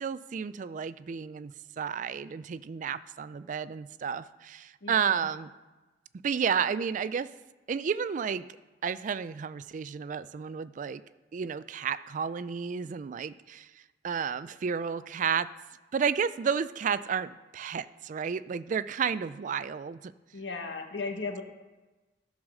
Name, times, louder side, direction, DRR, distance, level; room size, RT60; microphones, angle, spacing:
voice 1, 0.0-5.5 6.2-7.3 7.7-8.4 8.8-11.0 11.3-13.7 14.0-15.5 15.9-20.1, right 7 dB, 45° right, 16 dB, 0.3 m, -31 dB
voice 2, 4.8-5.3 20.3-21.4, left 3 dB, 85° left, 4 dB, 1.5 m, -36 dB
14.0 x 4.8 x 6.3 m, 1.2 s
head